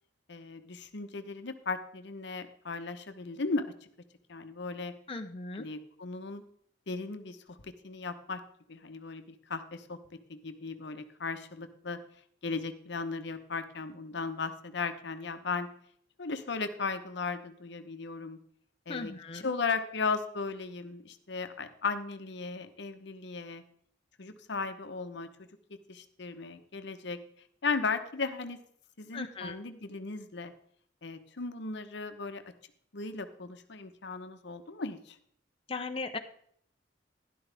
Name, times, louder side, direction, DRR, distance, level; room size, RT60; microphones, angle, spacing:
voice 1, 0.3-3.6 4.3-4.9 5.5-6.4 6.9-8.4 8.7-12.0 12.4-15.7 16.2-18.4 18.9-23.6 24.2-25.3 25.9-27.2 27.6-28.6 29.0-30.5 31.0-32.4 32.9-35.2, left 4 dB, 70° left, 8 dB, 0.9 m, -36 dB
voice 2, 5.1-5.7 18.9-19.5 29.1-29.6 35.7-36.2, left 3 dB, 30° left, 5 dB, 0.7 m, -37 dB
12.0 x 11.0 x 3.4 m, 0.63 s
head